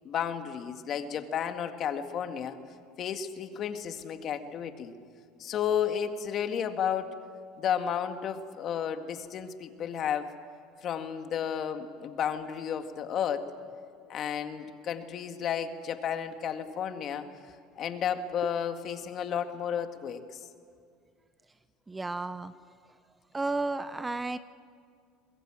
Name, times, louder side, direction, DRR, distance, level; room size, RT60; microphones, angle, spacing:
voice 1, 0.0-2.6 3.0-4.9 5.4-7.1 7.6-10.3 10.8-13.5 14.1-17.3 17.7-20.4, left 8 dB, 45° left, 7 dB, 1.8 m, -32 dB
voice 2, 21.9-22.6 23.3-24.4, right 3 dB, 15° right, 14 dB, 0.6 m, -32 dB
22.0 x 21.5 x 8.8 m, 2.2 s
supercardioid pair, 115°, 0 cm